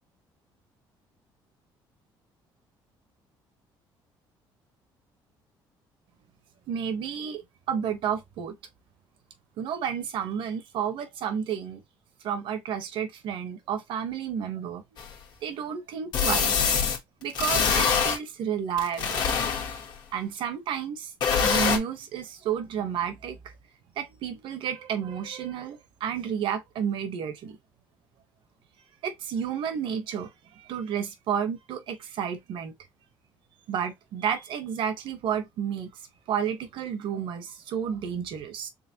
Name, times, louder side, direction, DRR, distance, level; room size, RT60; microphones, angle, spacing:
voice 1, 6.7-7.4 7.7-8.6 9.6-11.8 12.2-14.8 15.4-16.6 17.2-19.2 20.1-21.1 21.4-23.4 24.0-27.6 29.0-30.3 30.5-32.7 33.7-35.9 36.3-38.7, right 8 dB, 70° right, 1.1 m, -31 dB
sound 1, 15.0-15.1 16.1-17.0 17.3-18.2 18.8-19.9 21.2-21.8, left 6 dB, 55° left, 1.3 m, -24 dB
3.9 x 3.5 x 2.9 m
cardioid pair, 130°, 9 cm